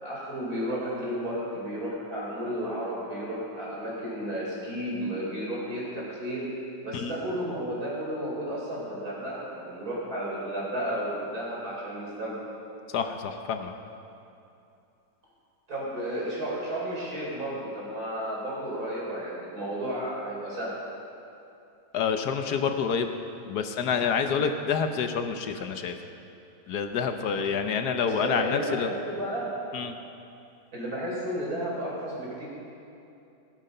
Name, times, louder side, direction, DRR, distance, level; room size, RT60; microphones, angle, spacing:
voice 1, 0.0-6.5 6.8-12.4 15.7-20.7 27.9-29.5 30.7-32.4, right 1 dB, 60° right, -6 dB, 4.8 m, -33 dB
voice 2, 12.9-13.7 21.9-23.1 23.5-25.9 26.7-28.9 29.7-29.9, left 6 dB, 75° left, 7 dB, 1.3 m, -28 dB
17.0 x 11.5 x 5.5 m, 2.7 s
omnidirectional pair, 1.8 m